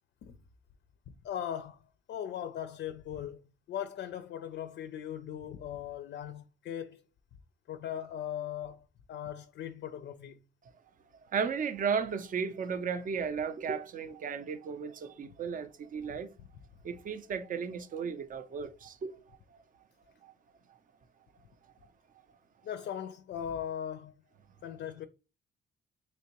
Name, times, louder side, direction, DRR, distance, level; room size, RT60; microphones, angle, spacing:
voice 1, 1.1-1.8 2.1-3.4 3.7-7.0 7.7-10.4 15.2-15.3 22.6-24.1 24.6-25.1, left 9 dB, 60° left, 0.4 m, -39 dB
voice 2, 11.3-16.3 16.8-19.2 20.2-20.3, right 6 dB, 45° right, 0.5 m, -34 dB
3.4 x 3.0 x 2.9 m
cardioid pair, 90°, 20 cm